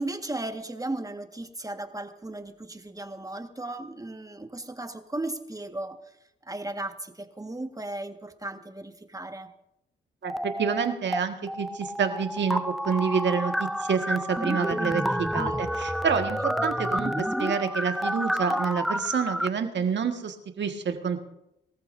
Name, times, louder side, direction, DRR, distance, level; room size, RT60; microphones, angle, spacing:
voice 1, 0.0-6.2 6.4-9.5 15.4-15.8 16.3-16.4, right 2 dB, 15° right, 7 dB, 1.6 m, -36 dB
sound 1, 10.2-11.2 11.5-19.5, equal, ahead, 0.6 m, -29 dB
voice 2, 10.2-21.2, right 6 dB, 60° right, 6 dB, 1.7 m, -28 dB
22.5 x 14.0 x 2.7 m, 0.87 s
supercardioid pair, 45°, 21 cm